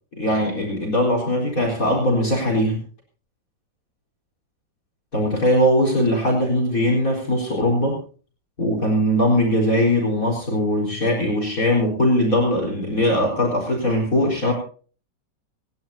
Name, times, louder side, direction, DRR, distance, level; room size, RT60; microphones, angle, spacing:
voice 1, 0.1-2.8 5.1-8.0 8.6-14.5, left 1 dB, 50° left, 0 dB, 4.7 m, -20 dB
28.5 x 11.5 x 2.7 m, 0.40 s
omnidirectional pair, 1.9 m